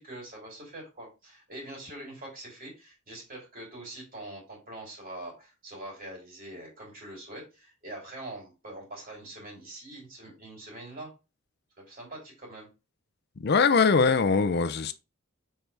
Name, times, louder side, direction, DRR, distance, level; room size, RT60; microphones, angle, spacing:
voice 1, 0.0-11.1 11.8-12.7, right 1 dB, 45° right, 3.3 m, -44 dB
voice 2, 13.4-14.9, left 5 dB, 50° left, 0.5 m, -22 dB
6.1 x 4.6 x 3.4 m
head